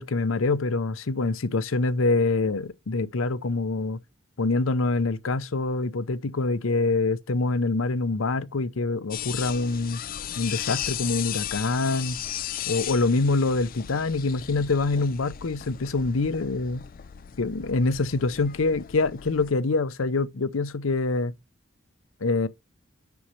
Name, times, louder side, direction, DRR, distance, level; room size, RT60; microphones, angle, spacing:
voice 1, 0.0-4.0 4.4-10.0 10.4-12.2 12.7-16.8 17.4-21.3 22.2-22.5, left 3 dB, 80° left, 0.7 m, -25 dB
sound 1, 9.1-19.5, left 10 dB, 45° left, 0.4 m, -36 dB
6.9 x 6.3 x 3.1 m
head